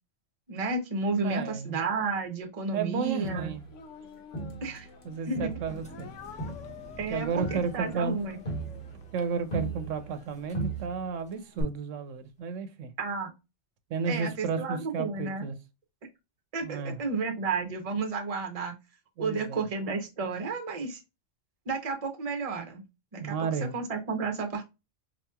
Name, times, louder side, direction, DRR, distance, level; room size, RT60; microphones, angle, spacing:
voice 1, 0.5-3.5 4.6-4.9 5.3-5.5 7.0-8.4 13.0-13.3 14.1-15.4 16.5-18.7 19.2-21.0 21.7-22.8 23.1-23.5 23.7-24.6, right 4 dB, 35° right, 0.7 m, -32 dB
voice 2, 1.2-1.8 2.7-3.6 5.0-6.1 7.1-8.2 9.1-12.9 13.9-15.6 16.6-17.0 19.2-19.7 23.2-23.7, right 5 dB, 85° right, 1.0 m, -33 dB
Crowd, 3.2-5.0 5.3-10.3 10.5-11.2 11.6-11.7, right 3 dB, 45° left, 1.2 m, -37 dB
Speech, 3.7-5.2 5.9-9.9, left 9 dB, 80° left, 0.9 m, -49 dB
Engine, 5.6-11.4, right 1 dB, 5° left, 0.7 m, -52 dB
4.3 x 2.9 x 2.2 m
omnidirectional pair, 1.3 m